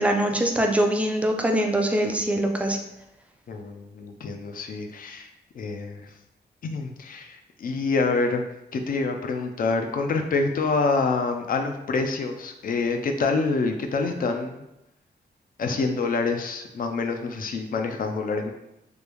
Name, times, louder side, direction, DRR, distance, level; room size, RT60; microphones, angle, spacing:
voice 1, 0.0-2.8, right 1 dB, 10° right, 3 dB, 0.3 m, -23 dB
voice 2, 3.5-5.3 5.6-6.0 6.6-8.4 8.7-14.6 15.6-18.5, left 4 dB, 55° left, 4 dB, 0.4 m, -26 dB
3.1 x 2.5 x 3.4 m, 0.86 s
wide cardioid pair, 150°, 17 cm